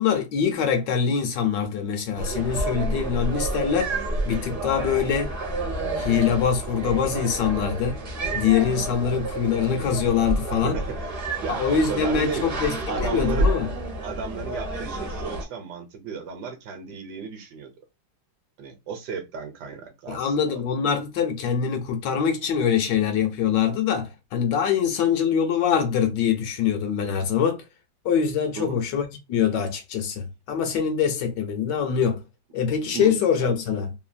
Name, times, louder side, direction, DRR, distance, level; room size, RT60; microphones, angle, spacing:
voice 1, 0.0-5.3 6.0-8.0 8.3-10.8 11.5-13.7 20.1-27.6 28.0-32.2 32.5-33.9, left 7 dB, 75° left, 1.2 m, -24 dB
sound 1, 2.1-15.4, right 1 dB, 55° right, 0.6 m, -29 dB
voice 2, 10.5-11.1 11.4-12.5 12.9-13.5 14.0-17.7 18.6-20.6 28.6-28.8 32.9-33.2, right 5 dB, 70° right, 1.1 m, -34 dB
3.2 x 2.2 x 2.4 m
omnidirectional pair, 2.1 m